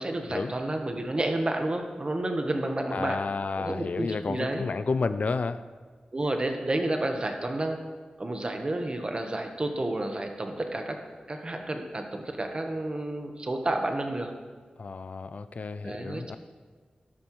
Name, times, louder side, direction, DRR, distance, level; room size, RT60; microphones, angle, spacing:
voice 1, 0.0-3.2 3.5-4.6 6.1-7.8 8.2-11.0 11.3-14.3 15.8-16.4, right 1 dB, 35° right, 4 dB, 1.2 m, -30 dB
voice 2, 2.9-5.6 14.8-16.4, left 4 dB, 60° left, 13 dB, 0.4 m, -31 dB
12.5 x 11.5 x 3.1 m, 1.5 s
wide cardioid pair, 80°, 3 cm